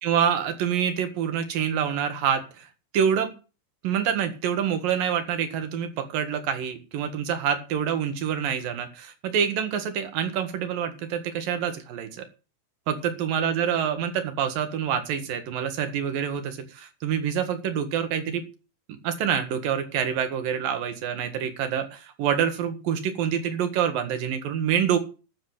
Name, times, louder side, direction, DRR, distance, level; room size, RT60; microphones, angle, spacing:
voice 1, 0.0-2.7 2.9-3.3 3.8-12.3 12.9-18.5 19.0-25.0, right 8 dB, 90° right, 8 dB, 3.5 m, -26 dB
12.5 x 7.6 x 7.8 m, 0.33 s
omnidirectional pair, 3.9 m